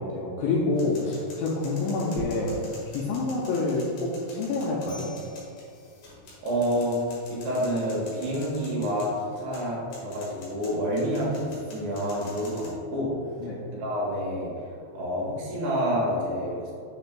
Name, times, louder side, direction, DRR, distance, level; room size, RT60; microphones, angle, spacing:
voice 1, 0.0-2.5 2.9-5.1 13.4-13.6, left 3 dB, 80° left, -4 dB, 2.6 m, -27 dB
sound 1, 0.7-12.7, left 2 dB, 60° left, 2.5 m, -48 dB
sound 2, 2.1-2.6, right 3 dB, 85° right, 3.9 m, -38 dB
voice 2, 6.4-7.0 7.3-13.1 13.7-14.5 14.9-16.7, equal, 70° right, -4 dB, 3.3 m, -28 dB
7.7 x 6.7 x 2.2 m, 2.6 s
omnidirectional pair, 5.8 m